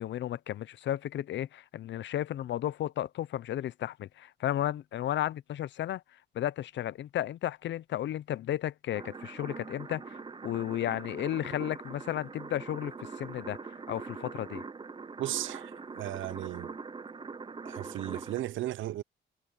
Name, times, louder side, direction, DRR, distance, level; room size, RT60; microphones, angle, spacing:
voice 1, 0.0-6.0 6.3-13.6 13.9-14.6, left 12 dB, 65° left, 0.7 m, -33 dB
sound 1, 8.9-18.4, right 4 dB, 25° right, 0.7 m, -43 dB
voice 2, 15.2-16.8 17.6-19.0, right 14 dB, 75° right, 0.7 m, -35 dB
cardioid pair, 90°, 20 cm